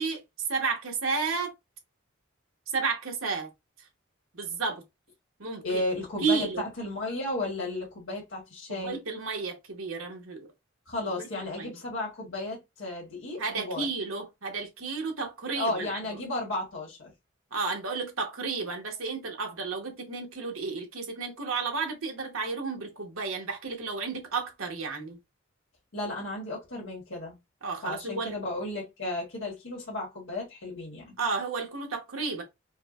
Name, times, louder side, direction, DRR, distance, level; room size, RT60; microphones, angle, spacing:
voice 1, 0.0-1.5 2.7-3.5 3.8-3.9 4.3-4.8 5.4-5.8 6.2-6.6 8.7-10.5 11.2-11.7 13.4-16.2 17.5-25.2 27.6-28.3 31.2-32.4, right 4 dB, 85° right, 1.1 m, -32 dB
voice 2, 5.6-9.0 10.9-13.9 15.6-17.1 25.9-27.4 27.8-31.1, left 2 dB, 65° left, 1.4 m, -34 dB
4.7 x 2.2 x 2.3 m
head